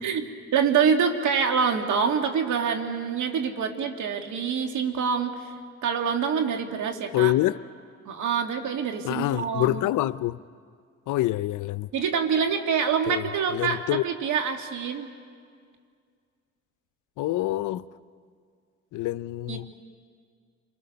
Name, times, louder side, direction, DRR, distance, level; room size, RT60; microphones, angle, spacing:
voice 1, 0.0-5.5 5.8-7.3 8.1-9.8 11.9-15.1 19.5-19.6, right 6 dB, 75° right, 2.3 m, -26 dB
voice 2, 7.1-7.6 9.0-10.4 11.1-11.9 13.1-14.0 17.2-17.8 18.9-19.7, left 15 dB, 80° left, 0.6 m, -26 dB
29.0 x 23.0 x 6.8 m
cardioid pair, 90°, 30 cm